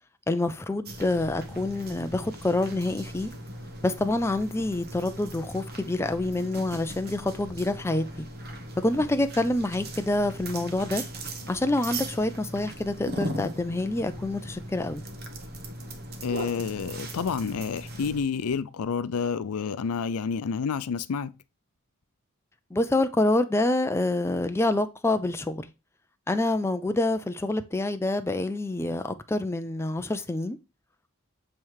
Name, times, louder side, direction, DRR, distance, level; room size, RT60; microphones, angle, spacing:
voice 1, 0.3-3.3 3.8-8.3 8.8-11.0 11.5-15.0 22.7-25.7 26.3-30.6, left 2 dB, 10° left, 0.4 m, -27 dB
sound 1, 0.8-18.2, right 1 dB, 45° right, 1.0 m, -39 dB
voice 2, 16.2-21.3, left 6 dB, 80° left, 0.5 m, -29 dB
7.3 x 3.2 x 4.7 m
head